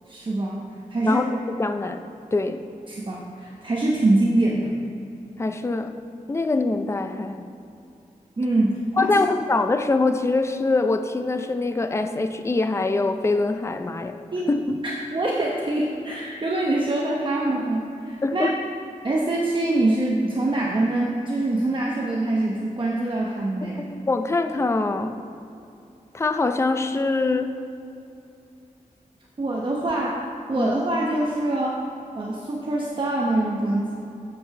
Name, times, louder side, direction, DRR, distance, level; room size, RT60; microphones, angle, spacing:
voice 1, 0.1-0.6 0.9-1.3 2.9-4.8 8.4-9.2 14.3-14.5 14.8-18.5 19.0-23.9 29.4-30.1 30.5-31.9 32.1-34.1, right 2 dB, 35° right, -3 dB, 1.0 m, -24 dB
voice 2, 1.6-2.0 2.3-2.6 5.4-5.9 6.3-7.5 9.0-14.1 14.5-14.8 18.2-18.5 23.9-25.1 26.1-27.5 30.5-30.8, left 3 dB, 20° left, 7 dB, 0.5 m, -23 dB
7.7 x 7.7 x 6.5 m, 2.7 s
wide cardioid pair, 140°, 14 cm